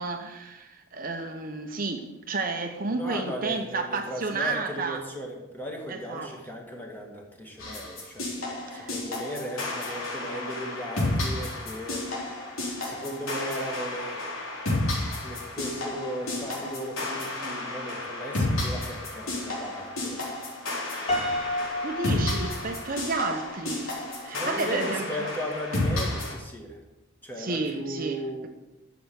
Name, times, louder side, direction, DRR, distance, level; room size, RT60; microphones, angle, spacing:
voice 1, 0.0-5.0 5.9-6.3 8.7-8.9 21.8-23.9 24.2-25.3 27.4-28.5, right 3 dB, 45° right, 0.9 m, -31 dB
voice 2, 2.9-8.3 8.7-12.3 12.8-14.2 15.2-20.3 24.3-26.8 27.2-28.5, equal, 10° left, 2.3 m, -36 dB
sound 1, 7.6-26.3, left 2 dB, 80° left, 3.8 m, -32 dB
Piano, 21.1-23.3, left 1 dB, 30° left, 4.4 m, -31 dB
12.5 x 7.1 x 8.0 m
head